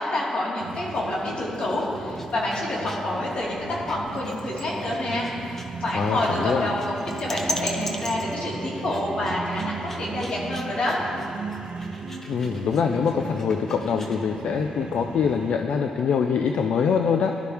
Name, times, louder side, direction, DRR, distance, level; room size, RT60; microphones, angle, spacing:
voice 1, 0.0-5.4 5.8-11.0, left 1 dB, 60° left, -6 dB, 4.3 m, -28 dB
sound 1, 0.6-15.5, right 4 dB, 75° right, 1.0 m, -36 dB
sound 2, 1.6-14.3, equal, 20° left, 1.2 m, -40 dB
voice 2, 5.9-6.7 12.3-17.3, left 6 dB, 85° left, 4 dB, 0.7 m, -24 dB
22.5 x 12.5 x 3.6 m, 2.7 s
wide cardioid pair, 130°, 2 cm